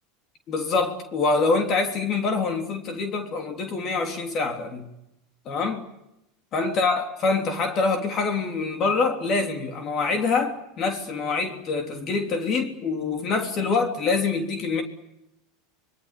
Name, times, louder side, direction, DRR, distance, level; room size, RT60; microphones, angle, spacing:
voice 1, 0.5-4.9 5.4-5.8 6.5-14.8, left 4 dB, 40° left, 4 dB, 3.4 m, -25 dB
25.5 x 22.0 x 8.4 m, 0.86 s
supercardioid pair, 120°, 0 cm